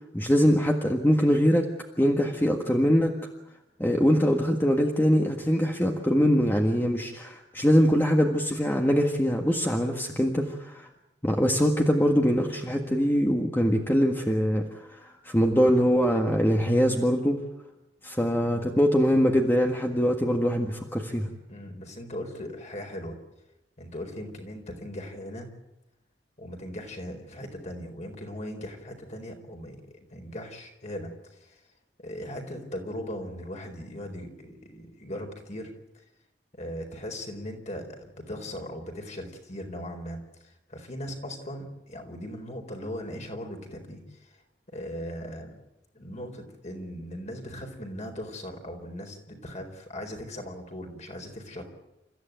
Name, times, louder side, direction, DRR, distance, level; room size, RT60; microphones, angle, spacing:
voice 1, 0.1-1.7 2.0-3.1 3.8-10.9 11.2-17.4 18.0-21.3, equal, 10° left, 2 dB, 1.7 m, -23 dB
voice 2, 18.4-18.8 21.5-23.2 23.8-25.5 26.4-31.6 32.0-35.7 36.5-44.4 44.7-45.5 45.9-51.6, equal, 40° left, 4 dB, 4.3 m, -39 dB
29.0 x 14.5 x 9.2 m, 0.94 s
head